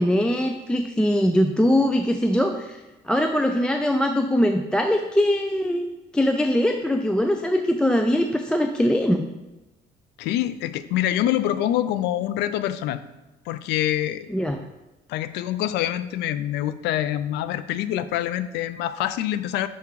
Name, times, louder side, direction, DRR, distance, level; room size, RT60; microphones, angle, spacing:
voice 1, 0.0-9.2 14.3-14.6, equal, 5° left, 5 dB, 0.3 m, -22 dB
voice 2, 10.2-13.0 13.5-14.3 15.1-19.7, left 12 dB, 85° left, 14 dB, 0.4 m, -25 dB
6.7 x 3.6 x 4.6 m, 1.0 s
cardioid pair, 110°, 17 cm